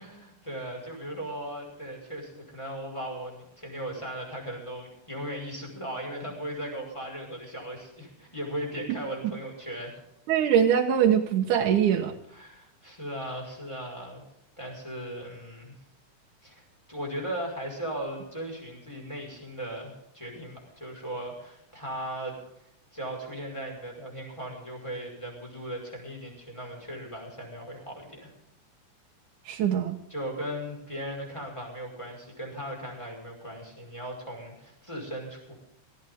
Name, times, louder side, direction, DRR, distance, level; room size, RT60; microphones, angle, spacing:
voice 1, 0.0-10.0 12.3-14.2 14.6-15.7 16.4-16.6 16.9-22.4 22.9-28.3 29.5-29.6 30.1-35.5, right 1 dB, 10° left, 0 dB, 5.4 m, -37 dB
voice 2, 10.3-12.1 29.5-30.0, right 9 dB, 75° right, 1 dB, 2.6 m, -22 dB
18.5 x 15.0 x 3.7 m, 0.78 s
omnidirectional pair, 3.6 m